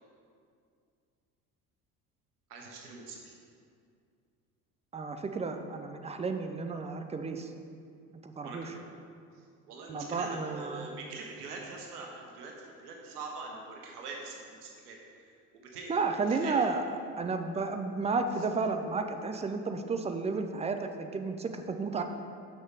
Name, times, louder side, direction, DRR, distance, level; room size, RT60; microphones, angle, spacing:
voice 1, 2.5-3.3 8.4-9.0 9.7-14.3 14.6-15.0 15.7-16.0 16.3-16.5, right 3 dB, 75° right, 0 dB, 1.0 m, -43 dB
voice 2, 4.9-7.5 8.2-8.8 9.9-10.9 15.9-22.0, right 4 dB, 15° right, 6 dB, 0.5 m, -32 dB
7.4 x 6.2 x 3.5 m, 2.3 s
figure-of-eight pair, 60°, 46 cm